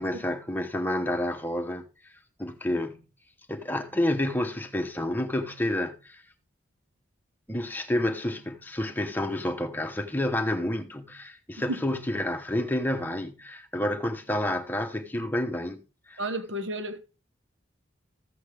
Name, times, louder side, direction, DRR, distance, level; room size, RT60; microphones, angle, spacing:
voice 1, 0.0-2.1 2.4-3.0 3.5-6.2 7.5-15.8 16.1-16.2, left 1 dB, 10° left, 1.0 m, -29 dB
voice 2, 16.2-17.0, right 1 dB, 65° right, 1.2 m, -32 dB
14.5 x 7.8 x 3.4 m
head